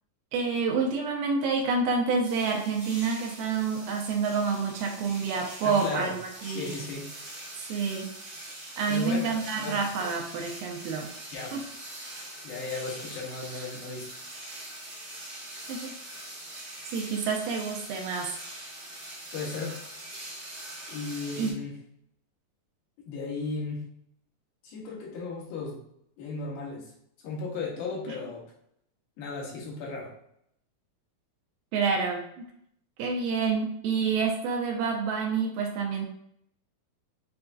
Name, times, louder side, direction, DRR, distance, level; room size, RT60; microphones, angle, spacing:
voice 1, 0.3-6.7 7.7-8.1 8.8-11.1 11.5-11.6 15.6-15.9 16.9-18.3 21.4-21.5 31.7-32.4 33.0-36.1, right 5 dB, 85° right, 0 dB, 2.3 m, -28 dB
sound 1, 2.2-21.5, right 1 dB, 50° right, 1.0 m, -43 dB
voice 2, 5.6-6.1 6.4-7.1 8.9-9.9 11.3-11.6 12.4-14.1 19.3-19.8 20.9-21.7 23.0-23.8 24.6-25.8 26.2-26.9 27.2-28.4 29.2-30.1, left 4 dB, 90° left, -2 dB, 2.8 m, -35 dB
7.5 x 2.6 x 2.3 m, 0.73 s
omnidirectional pair, 4.0 m